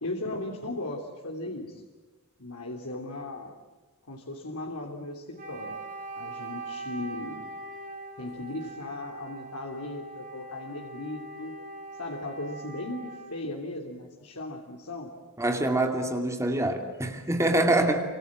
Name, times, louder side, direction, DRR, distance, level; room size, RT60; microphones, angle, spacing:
voice 1, 0.0-1.8 2.4-3.5 4.1-5.7 6.1-7.5 8.2-11.5 12.0-15.1 17.5-17.9, left 2 dB, 85° left, 1 dB, 3.2 m, -37 dB
Wind instrument woodwind instrument, 5.3-13.4, right 2 dB, 35° right, 7.8 m, -41 dB
voice 2, 15.4-18.0, right 1 dB, 15° right, 5 dB, 2.5 m, -25 dB
29.0 x 26.5 x 7.5 m, 1.3 s
head